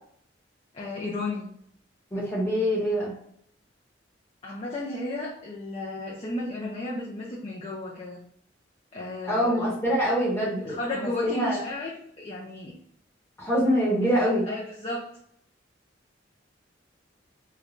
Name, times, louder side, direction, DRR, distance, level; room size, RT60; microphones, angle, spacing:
voice 1, 0.7-1.5 4.4-8.2 8.9-9.7 10.4-12.8 14.1-15.1, left 2 dB, 30° left, -4 dB, 0.5 m, -33 dB
voice 2, 2.1-3.1 9.3-11.6 13.4-14.5, equal, 15° left, -6 dB, 1.1 m, -25 dB
3.2 x 2.3 x 3.8 m, 0.66 s
head